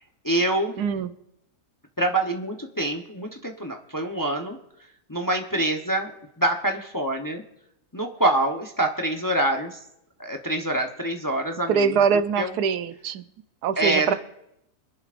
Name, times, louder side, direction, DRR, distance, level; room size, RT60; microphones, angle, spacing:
voice 1, 0.2-0.7 2.0-4.6 5.1-6.1 6.4-7.4 7.9-9.8 10.2-11.9 12.4-12.5 13.8-14.1, right 1 dB, 15° left, 3 dB, 0.7 m, -25 dB
voice 2, 0.8-1.1 11.7-13.2 13.6-14.1, right 6 dB, 90° right, 11 dB, 1.3 m, -23 dB
25.0 x 10.5 x 2.5 m, 0.81 s
omnidirectional pair, 1.6 m